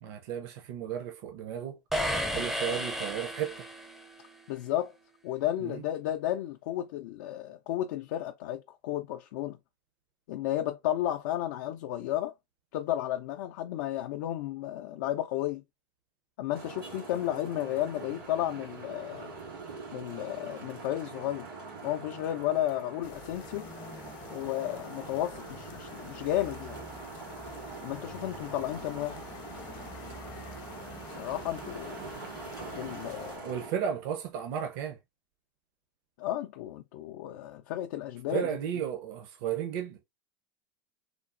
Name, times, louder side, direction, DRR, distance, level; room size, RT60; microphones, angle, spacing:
voice 1, 0.0-1.8 2.3-3.5 5.6-5.8 33.4-35.0 38.3-40.0, right 9 dB, 65° right, 0.5 m, -34 dB
sound 1, 1.9-4.1, equal, ahead, 0.4 m, -32 dB
voice 2, 4.5-4.9 5.2-9.6 10.3-12.3 12.7-15.6 16.4-19.4 19.9-21.5 21.8-23.7 24.3-26.8 27.8-29.2 31.2-32.0 32.7-33.5 36.2-38.5, left 13 dB, 70° left, 0.4 m, -33 dB
Traffic noise roadway noise, 16.5-33.7, right 4 dB, 90° right, 1.9 m, -44 dB
sound 2, 23.0-33.4, left 5 dB, 45° left, 0.7 m, -47 dB
3.3 x 2.0 x 2.4 m
hypercardioid pair, 105°, 11 cm